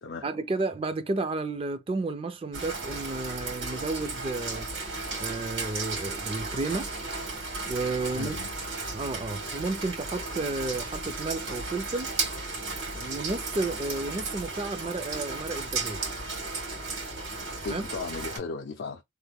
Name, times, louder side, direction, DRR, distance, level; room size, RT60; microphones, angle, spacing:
voice 1, 0.2-4.7 5.2-6.9 7.7-8.4 8.9-12.1 12.9-16.0 17.7-17.9, right 3 dB, 30° right, 0.3 m, -32 dB
Rain, 2.5-18.4, right 3 dB, 85° right, 1.9 m, -35 dB
voice 2, 8.2-8.5 17.4-19.0, left 4 dB, 65° left, 0.4 m, -36 dB
3.3 x 2.1 x 3.3 m
head